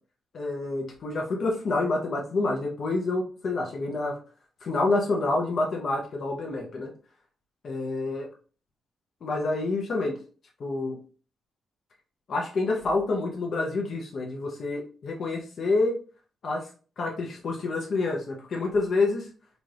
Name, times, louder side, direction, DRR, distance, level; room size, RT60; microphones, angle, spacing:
voice 1, 0.3-4.2 4.6-6.9 7.6-8.3 9.2-10.1 10.6-11.0 12.3-15.9 16.4-16.6 17.0-19.3, left 3 dB, 45° left, -1 dB, 0.7 m, -28 dB
4.0 x 2.4 x 3.3 m, 0.39 s
wide cardioid pair, 165°, 0 cm